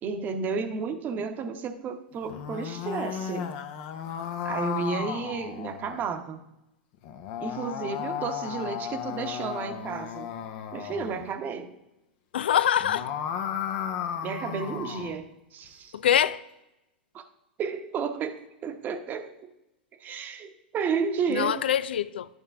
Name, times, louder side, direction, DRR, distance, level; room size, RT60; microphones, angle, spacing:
voice 1, 0.0-3.6 4.4-6.4 7.4-10.3 10.7-11.7 14.2-15.9 17.1-17.2 17.6-19.5 20.0-21.6, right 5 dB, 30° right, 0.9 m, -32 dB
sound 1, 2.2-6.1 7.0-11.3 12.7-15.2, left 8 dB, 55° left, 0.9 m, -34 dB
voice 2, 12.3-13.1 15.9-16.4 21.3-22.3, left 10 dB, 80° left, 0.4 m, -24 dB
11.0 x 5.4 x 3.5 m
hypercardioid pair, 110°, 6 cm